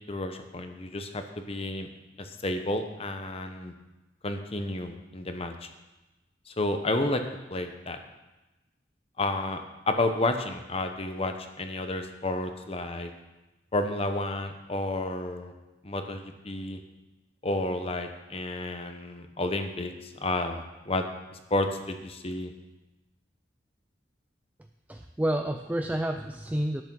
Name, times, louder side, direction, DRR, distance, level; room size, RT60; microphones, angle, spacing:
voice 1, 0.1-1.9 2.2-3.7 4.2-5.7 6.5-7.2 7.5-8.0 9.2-13.1 13.7-15.5 15.8-16.8 17.4-21.1 21.5-22.5, left 2 dB, 35° left, 6 dB, 0.9 m, -31 dB
voice 2, 24.9-26.8, right 1 dB, 10° right, 5 dB, 0.4 m, -29 dB
11.0 x 8.4 x 6.1 m, 1.1 s
head